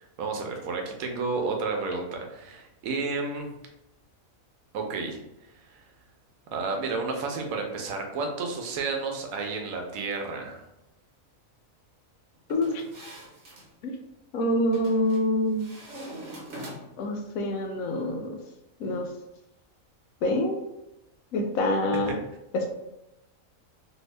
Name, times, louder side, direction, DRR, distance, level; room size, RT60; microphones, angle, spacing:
voice 1, 0.2-3.5 4.7-5.2 5.6-5.9 6.5-10.6 21.9-22.2, right 4 dB, 90° right, 2 dB, 1.1 m, -31 dB
voice 2, 12.5-12.8 13.8-13.9 14.3-15.6 17.0-18.4 18.8-19.1 20.2-20.6 21.3-22.1 22.5-22.7, left 1 dB, 85° left, 3 dB, 1.0 m, -26 dB
sound 1, 12.5-13.7 14.7-15.2 15.6-17.1, right 1 dB, 60° right, 1.1 m, -43 dB
2.8 x 2.7 x 3.2 m, 0.90 s
omnidirectional pair, 1.4 m